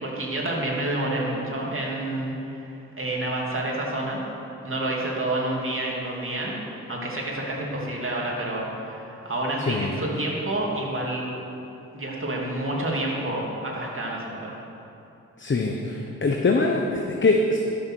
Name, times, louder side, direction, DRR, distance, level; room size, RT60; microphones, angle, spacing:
voice 1, 0.0-2.7 3.0-4.2 4.6-6.5 6.9-11.3 11.9-14.5, right 1 dB, 40° right, -3 dB, 2.9 m, -28 dB
voice 2, 15.4-17.6, left 3 dB, 35° left, 1 dB, 1.0 m, -23 dB
11.5 x 6.6 x 6.4 m, 2.8 s
cardioid pair, 50°, 33 cm